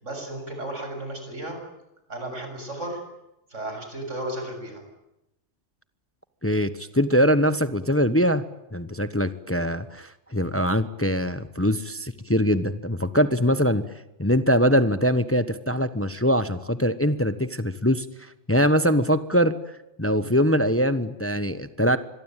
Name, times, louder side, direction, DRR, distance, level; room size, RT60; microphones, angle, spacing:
voice 1, 0.0-1.6 2.1-3.0 3.5-4.8, right 1 dB, 85° right, 4 dB, 7.6 m, -34 dB
voice 2, 6.4-8.4 8.7-13.8 14.2-19.5 20.0-22.0, equal, 10° left, 12 dB, 1.1 m, -22 dB
26.0 x 23.0 x 9.1 m, 0.88 s
omnidirectional pair, 1.2 m